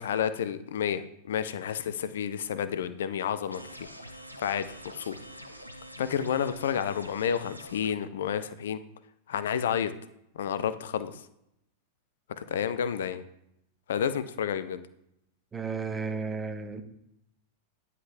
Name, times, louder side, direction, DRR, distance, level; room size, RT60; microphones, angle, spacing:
voice 1, 0.0-3.9 4.4-5.1 6.0-8.8 9.3-9.9 10.4-11.2 12.4-13.2 13.9-14.8, left 8 dB, 60° left, 13 dB, 0.4 m, -30 dB
sound 1, 3.5-7.9, equal, 90° right, 0.5 m, -46 dB
voice 2, 15.5-16.8, right 4 dB, 15° right, 8 dB, 0.7 m, -33 dB
9.5 x 5.3 x 2.6 m, 0.79 s
figure-of-eight pair, 90°, 0 cm